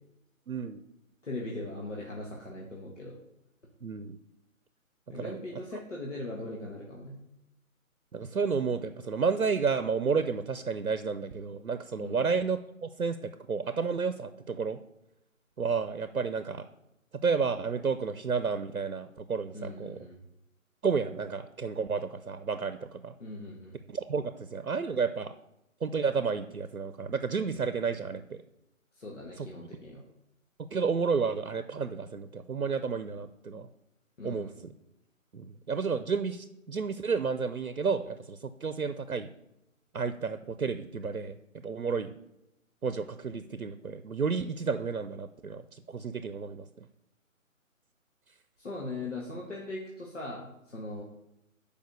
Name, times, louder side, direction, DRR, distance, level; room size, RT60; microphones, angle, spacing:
voice 1, 0.5-0.8 3.8-4.2 5.1-5.4 8.1-14.8 15.6-16.6 17.2-20.1 20.8-23.1 23.9-25.3 25.8-28.4 29.4-29.7 30.7-33.7 34.2-34.7 35.3-39.3 39.9-41.4 41.6-42.1 42.8-46.9, right 5 dB, 90° right, 11 dB, 0.6 m, -31 dB
voice 2, 1.2-3.2 5.1-7.2 12.0-12.2 19.5-20.2 23.2-23.8 28.9-30.0 34.2-34.5 48.6-51.0, left 2 dB, 60° left, -2 dB, 1.7 m, -40 dB
6.8 x 5.1 x 6.5 m, 0.86 s
figure-of-eight pair, 150°, 41 cm